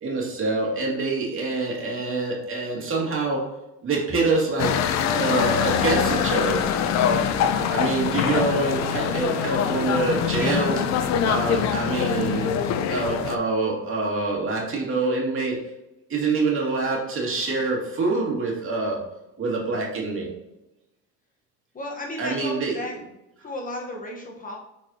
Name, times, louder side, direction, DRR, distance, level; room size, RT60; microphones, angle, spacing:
voice 1, 0.0-3.5 3.8-4.7 5.0-6.6 7.7-10.7 11.2-12.5 12.9-15.6 16.1-19.0 19.4-20.3 22.2-22.8, right 3 dB, 40° right, -2 dB, 2.3 m, -25 dB
sound 1, 4.6-13.4, left 7 dB, 55° left, 0.7 m, -24 dB
voice 2, 21.7-23.0 23.4-24.6, left 1 dB, 25° left, -1 dB, 1.1 m, -34 dB
7.5 x 4.6 x 2.8 m, 0.96 s
cardioid pair, 125°, 33 cm